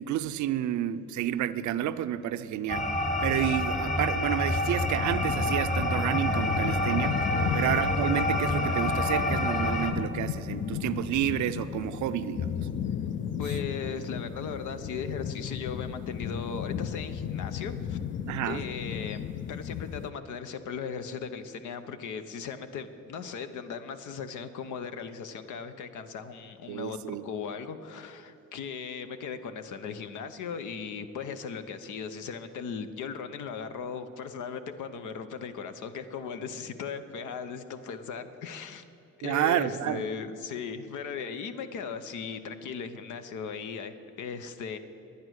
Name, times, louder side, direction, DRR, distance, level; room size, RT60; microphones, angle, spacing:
voice 1, 0.0-7.2 7.5-12.6 18.2-18.6 26.7-27.3 39.2-40.1, right 11 dB, 70° right, 12 dB, 0.6 m, -30 dB
sound 1, 2.7-9.9, left 1 dB, 25° left, 1.3 m, -28 dB
sound 2, 4.8-20.1, left 8 dB, 40° left, 0.4 m, -35 dB
voice 2, 13.4-18.0 18.4-27.0 27.2-38.8 39.2-44.8, left 6 dB, 80° left, 10 dB, 0.8 m, -37 dB
11.0 x 9.4 x 6.3 m, 2.9 s
cardioid pair, 90°, 30 cm